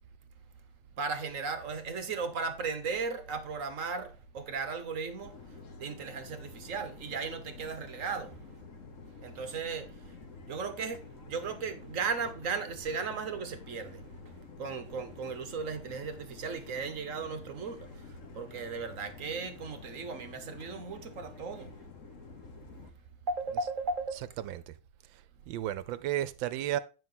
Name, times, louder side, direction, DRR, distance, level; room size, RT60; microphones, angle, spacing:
voice 1, 1.0-8.4 9.2-10.1 10.5-14.3 14.6-21.7 23.3-24.2, right 5 dB, 50° right, 1.0 m, -36 dB
sound 1, 5.2-22.9, left 4 dB, 45° left, 1.3 m, -50 dB
voice 2, 24.4-24.7 25.5-26.8, right 12 dB, 75° right, 1.3 m, -33 dB
9.4 x 5.8 x 3.9 m
omnidirectional pair, 2.2 m